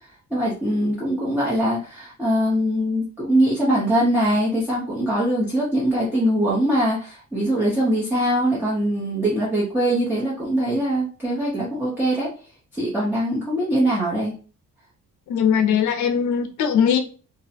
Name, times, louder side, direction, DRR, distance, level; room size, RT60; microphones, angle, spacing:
voice 1, 0.3-12.3 12.7-14.4, right 1 dB, 5° right, -8 dB, 0.5 m, -22 dB
voice 2, 15.3-17.0, left 7 dB, 65° left, 8 dB, 0.5 m, -20 dB
2.4 x 2.0 x 2.7 m, 0.37 s
cardioid pair, 145°, 32 cm